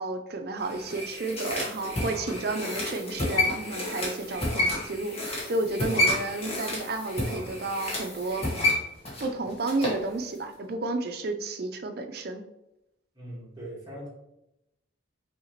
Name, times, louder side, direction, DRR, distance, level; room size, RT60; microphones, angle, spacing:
voice 1, 0.0-8.5 9.2-12.4, right 2 dB, 55° right, 6 dB, 0.5 m, -32 dB
sound 1, 0.6-10.0 10.4-10.5, left 1 dB, 30° left, 1.2 m, -30 dB
voice 2, 13.1-14.1, equal, 20° right, -5 dB, 1.5 m, -40 dB
5.5 x 2.8 x 2.9 m, 0.88 s
head